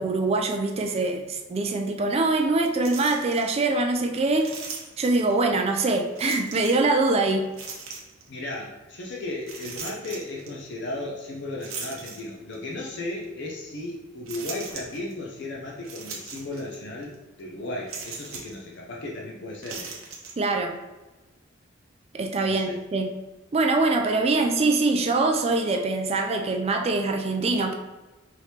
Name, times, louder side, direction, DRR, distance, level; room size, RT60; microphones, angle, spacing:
voice 1, 0.0-4.6 5.0-7.5 20.4-20.8 22.1-23.1 23.5-27.7, right 3 dB, 30° right, 4 dB, 0.3 m, -23 dB
sound 1, 2.8-3.5 4.4-5.3 6.1-6.9 7.5-8.3 9.4-10.5 11.6-12.7 13.2-13.3 14.3-15.1 15.8-16.8 17.0-17.1 17.9-18.6 19.5-20.3, right 5 dB, 80° right, 0.8 m, -38 dB
voice 2, 8.3-19.9 22.4-22.8, left 2 dB, 55° left, -2 dB, 0.6 m, -35 dB
4.9 x 3.1 x 2.8 m, 1.2 s
head